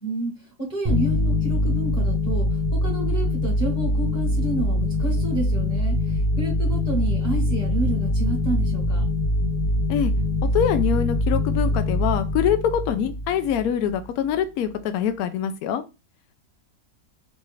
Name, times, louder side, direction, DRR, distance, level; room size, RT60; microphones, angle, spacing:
voice 1, 0.0-9.0, right 2 dB, 25° left, -2 dB, 1.2 m, -30 dB
sound 1, 0.8-14.0, left 1 dB, 35° right, 0.6 m, -23 dB
voice 2, 10.5-15.8, left 9 dB, 70° left, 9 dB, 1.0 m, -24 dB
4.0 x 2.4 x 3.0 m, 0.27 s
omnidirectional pair, 1.7 m